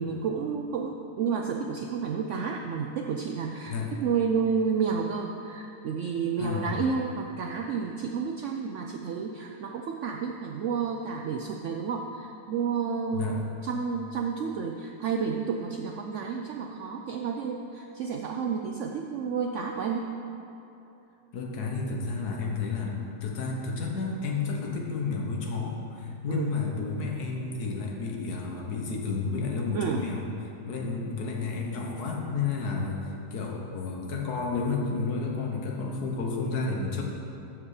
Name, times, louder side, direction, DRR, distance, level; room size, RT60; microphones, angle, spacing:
voice 1, 0.0-20.1 26.3-26.5 29.7-30.0, right 6 dB, 75° right, 3 dB, 0.7 m, -31 dB
voice 2, 6.4-6.8 13.1-13.4 21.3-30.2 30.6-37.0, left 4 dB, 70° left, 0 dB, 1.6 m, -31 dB
13.5 x 5.0 x 4.9 m, 2.9 s
omnidirectional pair, 1.8 m